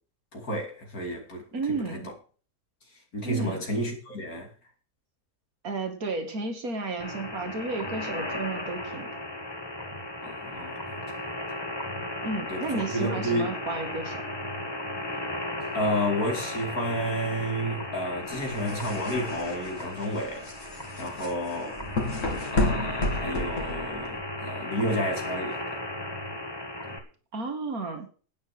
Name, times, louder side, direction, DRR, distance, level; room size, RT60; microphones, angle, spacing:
voice 1, 0.3-2.0 3.1-4.5 10.2-11.0 12.5-13.5 15.7-20.5 21.0-21.8 22.5-25.6 26.8-26.9, equal, 85° left, 3.2 m, -31 dB
voice 2, 1.5-2.1 3.2-3.6 5.6-9.2 12.2-14.2 27.3-28.1, right 3 dB, 85° right, 2.7 m, -32 dB
sound 1, 7.0-27.0, left 1 dB, 15° left, 1.8 m, -35 dB
sound 2, 18.3-24.2, left 1 dB, 60° left, 3.1 m, -31 dB
10.5 x 9.5 x 6.1 m
omnidirectional pair, 1.5 m